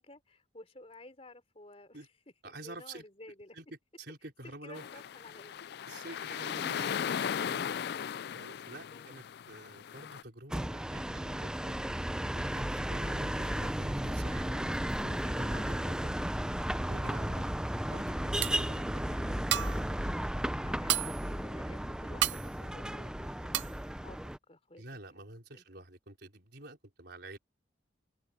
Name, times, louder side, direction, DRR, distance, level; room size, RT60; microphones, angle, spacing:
voice 1, 0.0-2.1 2.4-3.6 4.4-5.5 8.9-9.1 12.8-13.2 20.5-24.8 25.5-25.8, left 1 dB, 30° left, 3.6 m, -53 dB
voice 2, 2.4-3.0 3.5-3.6 4.0-4.8 5.9-7.0 7.4-7.7 8.3-11.8 12.3-16.1 16.9-17.4 17.9-19.4 24.8-27.4, right 2 dB, 55° right, 4.6 m, -48 dB
sound 1, 4.7-10.2, left 8 dB, 55° left, 0.3 m, -37 dB
sound 2, 10.5-24.4, equal, 5° right, 0.5 m, -34 dB
sound 3, 18.4-18.8 19.3-19.9 20.3-20.4 20.6-21.3 21.7-21.8 22.2-22.5 22.9-23.2 23.5-23.8, right 12 dB, 75° right, 0.5 m, -32 dB
head